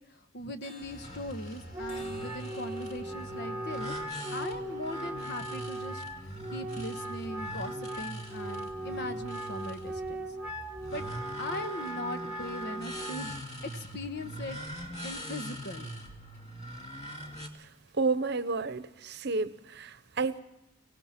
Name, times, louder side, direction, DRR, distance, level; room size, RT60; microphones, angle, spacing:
voice 1, 0.0-4.0 4.3-10.3 10.9-11.1 11.4-15.9, left 1 dB, 55° left, 8 dB, 1.3 m, -40 dB
sound 1, 0.6-8.4 8.9-9.0 9.4-9.5 10.0-10.1 10.5-10.6 11.0-11.1 11.5-11.6 12.1-12.2 12.6-12.7 13.2-13.3 13.6-13.7 14.2-14.3 14.7-14.8 15.3-15.4 15.8-15.9 16.3-16.4 16.8-16.9 17.3-17.4 17.9-18.0 18.5-18.6, left 3 dB, 75° left, 5.3 m, -55 dB
sound 2, 0.8-17.5, equal, 35° left, 2.6 m, -43 dB
Wind instrument woodwind instrument, 1.7-13.4, right 1 dB, 5° right, 1.1 m, -39 dB
voice 2, 17.9-20.4, right 4 dB, 55° right, 14 dB, 0.9 m, -31 dB
25.0 x 17.5 x 5.9 m, 0.92 s
head